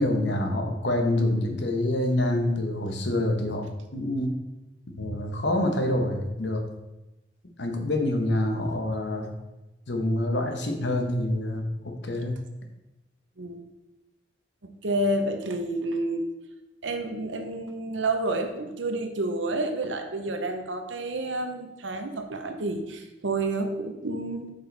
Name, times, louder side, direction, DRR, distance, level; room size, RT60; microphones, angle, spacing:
voice 1, 0.0-3.6 3.9-4.3 4.9-6.6 7.6-9.3 9.9-12.4, left 1 dB, 65° left, 4 dB, 1.0 m, -26 dB
voice 2, 14.6-16.3 16.8-24.5, right 2 dB, 90° right, 6 dB, 0.9 m, -29 dB
8.0 x 5.4 x 3.4 m, 1.0 s
head